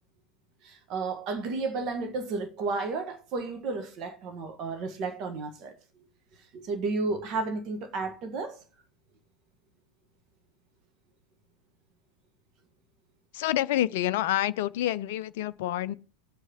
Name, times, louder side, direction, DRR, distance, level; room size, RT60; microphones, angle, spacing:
voice 1, 0.6-5.7 6.5-8.6, right 3 dB, 35° right, 1.6 m, -32 dB
voice 2, 13.3-15.9, left 13 dB, 50° left, 0.4 m, -28 dB
19.5 x 8.1 x 3.0 m
figure-of-eight pair, 90°, 0 cm